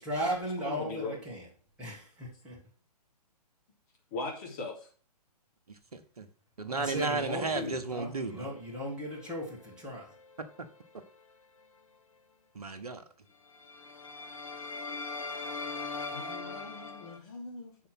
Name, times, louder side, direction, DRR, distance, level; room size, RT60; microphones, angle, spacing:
voice 1, 0.0-1.5 1.8-2.6 6.7-10.1, equal, 5° right, -7 dB, 2.0 m, -36 dB
voice 2, 0.6-1.2 4.1-4.9 16.1-17.9, left 3 dB, 30° left, 1 dB, 2.0 m, -40 dB
voice 3, 5.7-6.3 6.6-8.5 10.6-10.7 12.5-13.0, right 4 dB, 65° right, 9 dB, 1.1 m, -34 dB
sound 1, 8.9-10.7 11.0-11.2 13.5-17.2, left 3 dB, 50° left, 0.8 m, -41 dB
6.8 x 5.0 x 5.9 m, 0.43 s
figure-of-eight pair, 125°, 21 cm